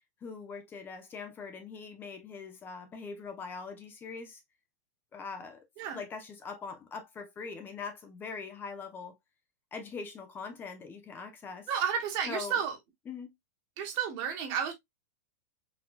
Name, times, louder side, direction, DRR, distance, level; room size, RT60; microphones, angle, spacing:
voice 1, 0.2-4.4 5.1-5.7 5.9-9.1 9.7-11.7 12.3-12.6 13.1-13.3, left 5 dB, 25° left, 0.8 m, -42 dB
voice 2, 11.7-12.8 13.8-14.7, right 7 dB, 45° right, 1.5 m, -31 dB
4.1 x 3.0 x 2.4 m
hypercardioid pair, 125°, 9 cm